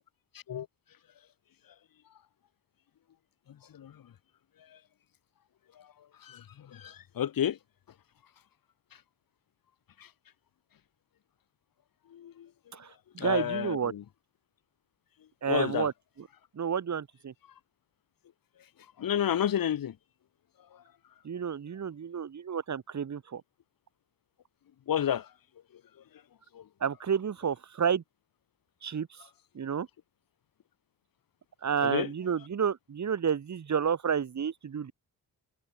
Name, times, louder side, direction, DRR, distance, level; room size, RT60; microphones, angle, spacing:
voice 1, 0.3-0.7 3.5-4.1 4.6-4.8 5.7-7.6 8.9-9.0 10.0-10.1 12.1-12.5 13.2-14.0 15.5-15.9 19.0-20.0 20.7-20.8 24.9-25.3 25.7-25.8 26.5-26.7 31.8-32.1, left 10 dB, 65° left, 4.6 m, -32 dB
voice 2, 12.7-13.9 15.4-15.9 16.5-17.3 21.2-23.4 26.8-28.0 28.8-29.2 29.5-29.9 31.6-34.9, right 7 dB, 50° right, 5.1 m, -30 dB
cardioid pair, 100°, 37 cm